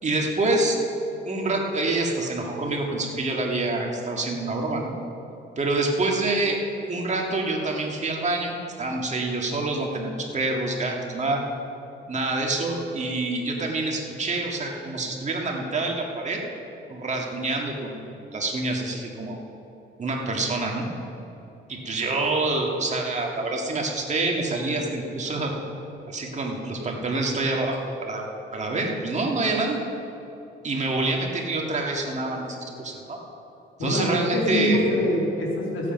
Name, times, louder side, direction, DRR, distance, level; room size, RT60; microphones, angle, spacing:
voice 1, 0.0-0.8 1.3-4.9 5.6-11.4 12.1-16.4 16.9-19.4 20.0-20.9 21.7-25.5 26.1-28.3 28.5-29.8 30.6-33.2 33.8-34.9, right 2 dB, 35° right, 0 dB, 2.0 m, -27 dB
voice 2, 33.8-35.9, left 1 dB, 80° left, -2 dB, 2.8 m, -24 dB
15.5 x 8.5 x 5.3 m, 2.9 s
cardioid pair, 90°, 20 cm